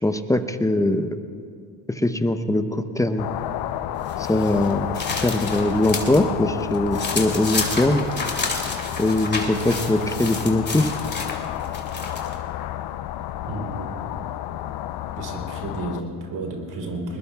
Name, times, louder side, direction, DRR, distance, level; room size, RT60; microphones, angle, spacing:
voice 1, 0.0-1.1 1.9-3.3 4.2-4.9 5.2-8.1 9.0-10.9, left 1 dB, 10° left, 9 dB, 0.8 m, -21 dB
sound 1, 3.2-16.0, left 12 dB, 65° left, 0.7 m, -31 dB
sound 2, 4.1-6.2 6.6-12.4, left 3 dB, 25° left, 2.5 m, -31 dB
voice 2, 13.5-14.0 15.2-17.2, right 2 dB, 60° right, 1 dB, 3.6 m, -32 dB
21.0 x 20.5 x 2.4 m, 2.3 s
supercardioid pair, 65°, 42 cm